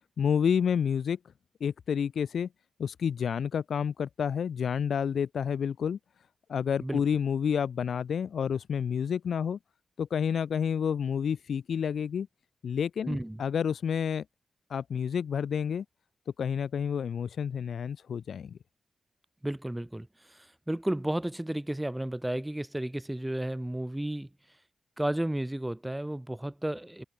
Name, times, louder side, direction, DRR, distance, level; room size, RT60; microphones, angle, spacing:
voice 1, 0.2-1.2 1.6-2.5 2.8-6.0 6.5-9.6 10.0-12.3 12.6-14.2 14.7-15.8 16.4-18.6, left 7 dB, 75° left, 0.7 m, -29 dB
voice 2, 13.1-13.4 19.4-24.3 25.0-27.0, right 1 dB, 10° right, 2.4 m, -33 dB
wide cardioid pair, 115°, 0 cm